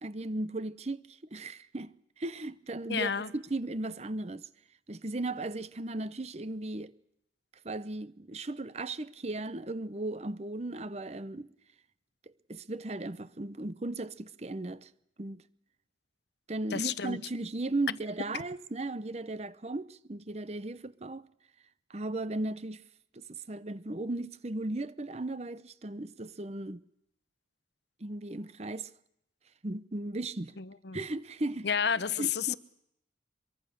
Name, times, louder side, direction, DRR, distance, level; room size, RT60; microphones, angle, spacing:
voice 1, 0.0-4.5 4.9-6.9 7.6-11.5 12.5-14.9 15.2-15.4 16.5-21.3 21.9-22.8 23.1-26.8 28.0-28.9 29.6-30.5 30.9-31.7 32.2-32.6, right 2 dB, 35° right, 0.8 m, -36 dB
voice 2, 2.9-3.3 16.7-17.2 30.6-31.0 31.6-32.6, left 7 dB, 60° left, 0.9 m, -31 dB
23.5 x 23.0 x 6.7 m
head